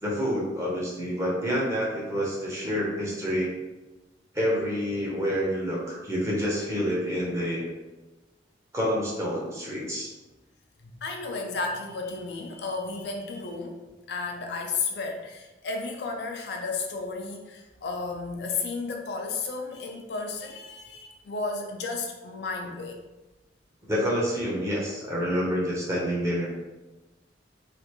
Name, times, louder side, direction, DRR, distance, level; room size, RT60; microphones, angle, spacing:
voice 1, 0.0-3.5 4.3-7.7 8.7-10.1 23.9-26.5, equal, 15° right, -4 dB, 0.7 m, -28 dB
voice 2, 11.0-13.8 14.1-23.0, left 4 dB, 70° left, 2 dB, 0.4 m, -33 dB
3.3 x 2.5 x 2.9 m, 1.1 s
head